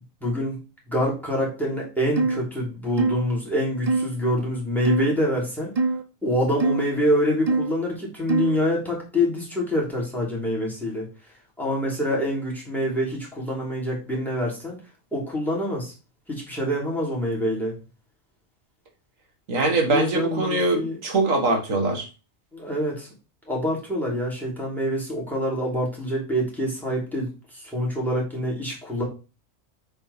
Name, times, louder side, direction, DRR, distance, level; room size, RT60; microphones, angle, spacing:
voice 1, 0.2-0.6 0.9-5.7 6.2-11.1 11.6-14.8 15.1-15.9 16.3-17.7 19.8-21.0 22.5-23.1 23.5-29.0, equal, ahead, -2 dB, 3.5 m, -26 dB
sound 1, 2.2-2.4 3.0-3.2 3.9-4.1 4.8-5.1 5.8-6.0 6.6-6.8 7.5-7.7 8.3-8.6, right 3 dB, 35° right, 0.6 m, -23 dB
voice 2, 19.5-22.1, right 2 dB, 85° right, 4 dB, 2.0 m, -22 dB
7.7 x 4.6 x 4.3 m, 0.32 s
omnidirectional pair, 1.3 m